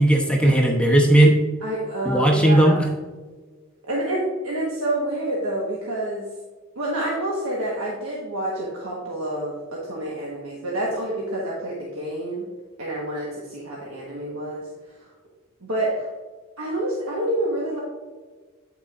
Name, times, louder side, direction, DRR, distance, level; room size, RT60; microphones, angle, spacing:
voice 1, 0.0-1.4 2.0-2.7, right 1 dB, 5° left, 0 dB, 0.9 m, -16 dB
voice 2, 1.6-2.8 3.8-6.3 6.7-12.5 12.8-14.7 15.0-15.1 15.6-16.1 16.6-17.8, right 1 dB, 80° right, -4 dB, 1.4 m, -28 dB
9.1 x 6.1 x 2.5 m, 1.4 s
head